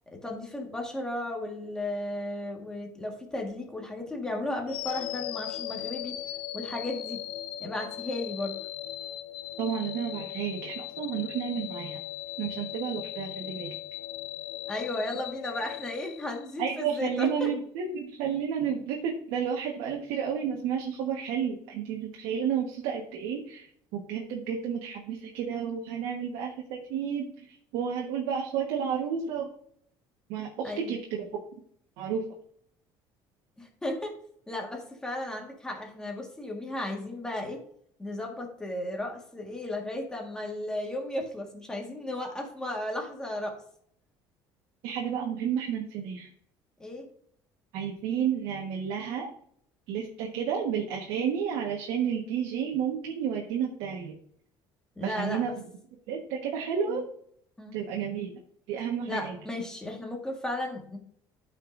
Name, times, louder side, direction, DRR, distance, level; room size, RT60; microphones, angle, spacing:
voice 1, 0.1-6.2 6.5-7.2 7.6-8.6 14.7-17.5 30.6-30.9 33.6-34.1 34.5-37.6 38.0-43.6 46.8-47.1 55.0-55.5 57.6-57.8 59.1-61.0, left 1 dB, 10° left, 1 dB, 1.7 m, -35 dB
sound 1, 4.7-16.8, left 13 dB, 70° left, 0.6 m, -38 dB
voice 2, 9.6-12.0 12.4-13.8 16.6-29.5 30.3-31.3 32.0-32.2 44.8-46.3 47.7-49.3 49.9-54.1 55.0-55.5 56.1-57.1 57.7-58.3 58.7-59.4, right 7 dB, 90° right, 0 dB, 1.4 m, -31 dB
13.0 x 5.4 x 2.6 m, 0.64 s
cardioid pair, 165°, 9 cm